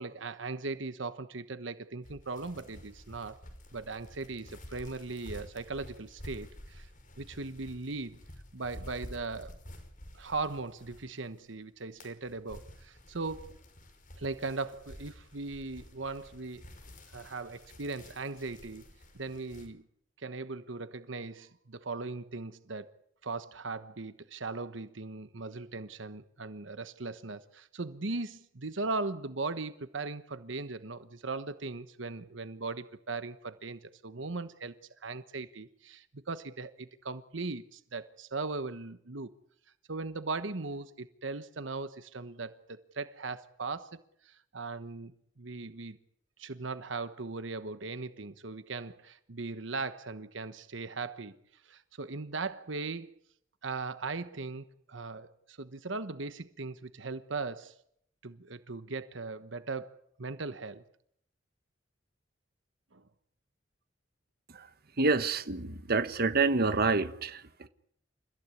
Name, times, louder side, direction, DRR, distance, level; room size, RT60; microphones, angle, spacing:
voice 1, 0.0-3.4 3.7-6.9 7.2-8.2 8.5-9.6 10.1-13.6 14.2-16.6 17.1-18.8 19.1-19.8 20.2-22.9 23.2-34.7 35.0-39.3 39.9-44.0 44.2-46.0 46.4-51.4 51.6-53.1 53.6-57.8 58.2-59.9 60.2-60.8 62.9-63.0, right 3 dB, 75° right, 1.2 m, -38 dB
sound 1, 2.0-11.4 11.7-19.7, equal, 45° left, 5.5 m, -50 dB
voice 2, 65.0-67.7, right 3 dB, 55° right, 1.3 m, -28 dB
29.0 x 15.0 x 9.8 m
head